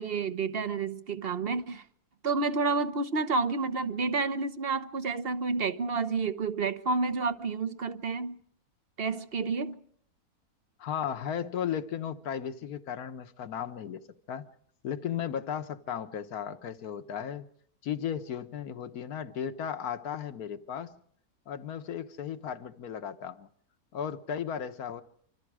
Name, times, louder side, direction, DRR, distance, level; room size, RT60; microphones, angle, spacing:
voice 1, 0.0-1.8 2.2-8.4 9.0-9.8, right 4 dB, 40° right, 1.1 m, -30 dB
voice 2, 10.8-14.0 14.3-14.5 14.8-17.5 17.8-20.9 21.5-23.5 23.9-25.0, left 8 dB, 70° left, 1.7 m, -35 dB
26.5 x 25.5 x 4.9 m
omnidirectional pair, 1.6 m